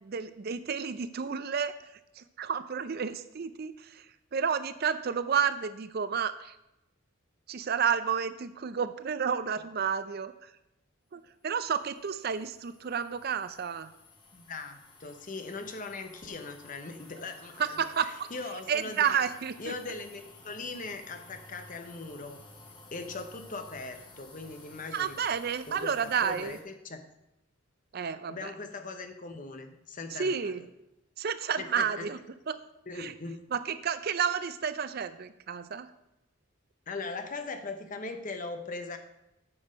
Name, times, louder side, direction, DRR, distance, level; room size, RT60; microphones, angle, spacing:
voice 1, 0.0-1.7 2.2-4.1 4.3-6.6 7.5-10.5 11.1-13.9 17.6-18.1 18.7-19.7 24.9-26.6 27.9-28.5 30.2-30.6 31.2-32.2 32.5-32.6 33.0-33.1 33.5-35.9, right 7 dB, 50° right, 13 dB, 0.4 m, -31 dB
sound 1, 11.5-26.6, left 2 dB, 20° left, 1.1 m, -54 dB
voice 2, 14.3-19.2 19.6-22.4 22.9-25.2 25.7-27.0 28.3-30.7 31.6-32.1 32.9-33.4 36.9-39.0, left 3 dB, 40° left, 7 dB, 0.8 m, -40 dB
8.7 x 6.3 x 5.1 m, 0.89 s
head